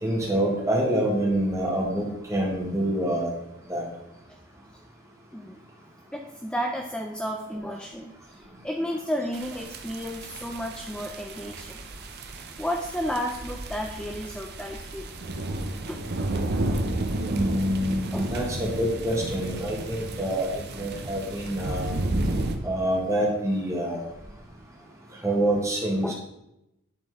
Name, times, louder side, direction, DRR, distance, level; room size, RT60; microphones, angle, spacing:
voice 1, 0.0-3.3 3.7-3.8 17.2-21.9 22.6-24.0 25.2-26.1, right 1 dB, 15° right, -2 dB, 1.7 m, -26 dB
voice 2, 6.1-11.8 12.6-15.1 15.9-16.0 18.1-18.4 26.0-26.1, equal, 5° left, 2 dB, 0.5 m, -32 dB
sound 1, 9.3-22.6, right 1 dB, 50° right, 0.7 m, -32 dB
11.0 x 4.4 x 3.6 m, 0.87 s
head